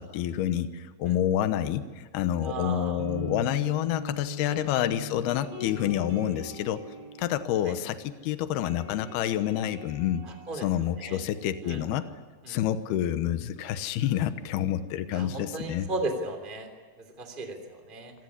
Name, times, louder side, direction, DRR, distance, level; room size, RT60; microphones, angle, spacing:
voice 1, 0.0-6.8 7.2-10.2 10.5-12.1 12.5-15.9, left 11 dB, 80° left, 10 dB, 3.0 m, -28 dB
voice 2, 2.4-3.0 4.5-4.6 7.6-7.7 10.5-10.6 11.0-11.2 11.6-11.8 12.4-12.6 15.1-16.7 17.0-18.1, right 2 dB, 15° right, 6 dB, 2.8 m, -35 dB
sound 1, 2.4-8.2 8.4-11.9, left 3 dB, 45° right, 5.7 m, -41 dB
25.5 x 18.5 x 10.0 m, 1.4 s
omnidirectional pair, 4.6 m